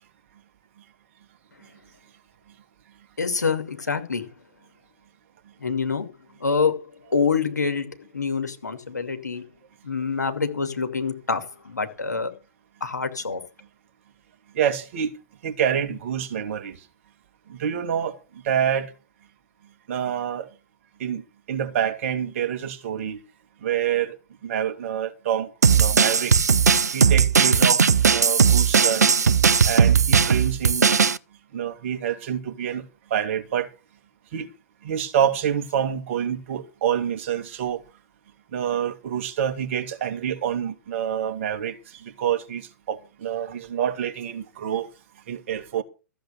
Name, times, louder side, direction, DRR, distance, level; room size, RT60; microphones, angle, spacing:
voice 1, 3.2-4.3 5.6-6.1 6.4-9.4 9.8-12.3 12.8-13.4, left 5 dB, 75° left, 2.5 m, -26 dB
voice 2, 14.5-15.2 15.4-16.8 17.5-18.2 18.4-18.9 19.9-20.5 21.0-21.2 21.5-23.2 23.6-24.2 24.4-25.5 25.8-26.3 26.9-29.1 29.7-30.9 31.5-32.8 33.1-33.7 34.3-34.5 34.8-37.8 38.5-44.9 45.3-45.8, right 9 dB, 45° right, 2.2 m, -27 dB
sound 1, 25.6-31.2, right 6 dB, 70° right, 0.7 m, -18 dB
14.5 x 7.8 x 6.8 m
figure-of-eight pair, 110°, 9 cm